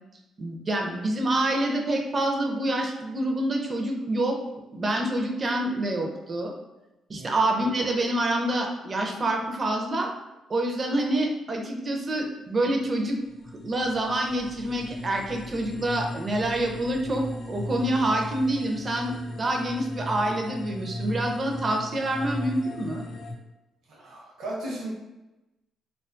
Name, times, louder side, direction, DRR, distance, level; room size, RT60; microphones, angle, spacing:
voice 1, 0.4-4.4 4.7-6.5 7.1-10.1 10.5-13.2 13.6-23.0, right 1 dB, 35° right, 2 dB, 0.4 m, -27 dB
sound 1, 12.7-23.3, left 1 dB, 75° left, 0.4 m, -37 dB
voice 2, 23.9-24.9, right 1 dB, 70° right, -5 dB, 0.8 m, -35 dB
2.3 x 2.2 x 2.4 m, 1.0 s
cardioid pair, 90°, 0 cm